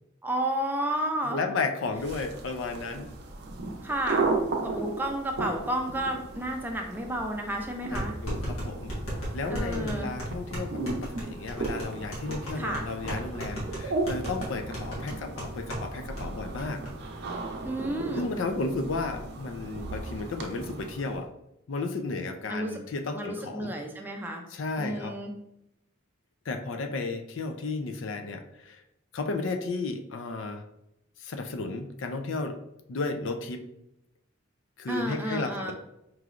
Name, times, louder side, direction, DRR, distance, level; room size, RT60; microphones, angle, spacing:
voice 1, 0.2-1.4 3.8-4.3 4.6-8.1 9.5-10.1 12.5-12.8 17.6-18.3 22.5-22.8 23.1-24.4 24.8-25.3 34.9-35.7, right 1 dB, 10° right, 2 dB, 0.4 m, -31 dB
voice 2, 1.2-3.1 7.9-9.0 9.3-16.8 18.2-21.3 21.7-23.7 24.5-25.2 26.5-28.8 29.1-30.6 31.2-32.6 32.9-33.7 34.8-35.7, left 3 dB, 65° left, 6 dB, 0.4 m, -33 dB
sound 1, 1.9-21.2, right 3 dB, 55° right, 0.6 m, -35 dB
sound 2, 7.9-15.9 16.2-16.3 16.6-16.9, equal, 80° left, 1.5 m, -35 dB
4.7 x 3.1 x 2.4 m, 0.83 s
head